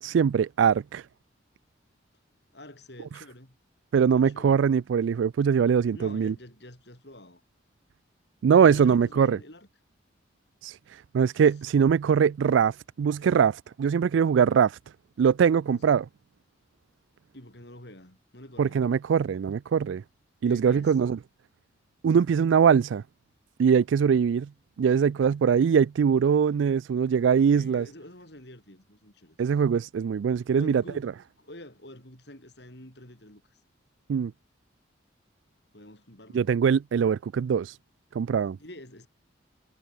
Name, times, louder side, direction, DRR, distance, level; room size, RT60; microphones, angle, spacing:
voice 1, 0.0-1.0 3.9-6.3 8.4-9.4 10.6-14.8 15.2-16.1 18.6-20.0 20.4-21.2 22.0-23.0 23.6-24.5 24.8-27.9 29.4-31.1 34.1-34.3 36.3-37.8 38.1-38.6, right 7 dB, 80° right, 0.3 m, -22 dB
voice 2, 2.5-3.6 4.1-4.7 5.9-7.4 8.6-9.7 11.3-11.5 15.7-15.9 17.3-18.8 20.4-21.0 24.8-24.9 27.3-29.4 30.5-31.1 31.4-33.6 35.7-36.5 38.6-39.1, left 1 dB, 60° left, 6.8 m, -47 dB
head